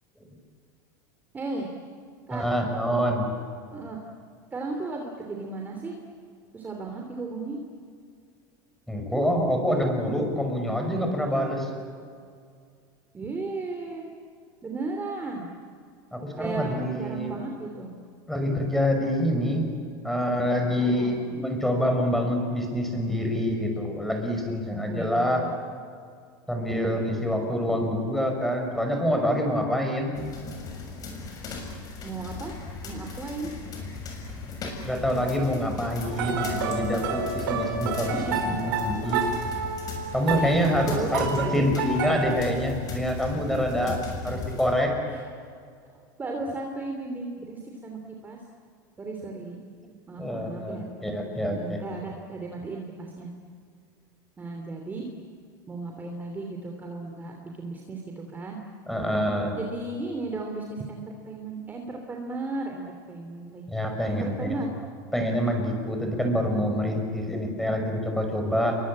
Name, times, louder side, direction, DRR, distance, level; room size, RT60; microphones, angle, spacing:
voice 1, 1.3-1.7 2.3-2.4 3.7-4.0 4.5-6.0 6.5-7.6 13.1-14.1 14.6-15.5 16.4-17.9 20.8-21.1 24.8-25.5 32.0-32.6 32.8-33.5 38.1-38.5 40.3-42.0 45.1-45.2 46.2-48.4 49.0-49.6 50.1-50.8 51.4-53.3 54.4-55.1 55.7-58.6 59.5-63.6 64.1-64.7, right 3 dB, 15° right, 1 dB, 3.1 m, -35 dB
voice 2, 2.3-3.3 8.9-11.7 16.1-17.3 18.3-19.7 20.0-25.4 26.5-30.2 34.8-38.2 38.4-39.3 40.1-44.9 50.2-51.8 58.9-59.6 63.7-64.4 65.1-68.8, equal, ahead, 3 dB, 5.8 m, -26 dB
sound 1, 30.1-44.7, left 4 dB, 35° left, 6.9 m, -37 dB
sound 2, 36.1-42.3, right 5 dB, 85° right, 5.1 m, -30 dB
28.5 x 23.5 x 8.8 m, 2.2 s
supercardioid pair, 140°, 11 cm